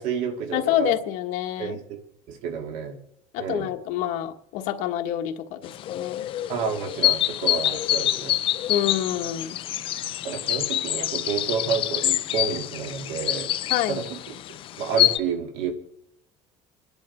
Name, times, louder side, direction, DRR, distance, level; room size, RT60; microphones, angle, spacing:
voice 1, 0.0-0.9 1.6-2.0 2.3-3.0 3.4-3.7 6.5-8.4 10.2-13.5 13.9-14.3 14.8-15.7, right 6 dB, 70° right, 2.4 m, -30 dB
voice 2, 0.5-1.8 3.3-6.3 8.7-9.6 13.7-14.0, left 11 dB, 70° left, 1.3 m, -27 dB
sound 1, 5.6-15.2, left 13 dB, 45° left, 0.5 m, -26 dB
28.5 x 10.5 x 4.3 m
cardioid pair, 150°, 13 cm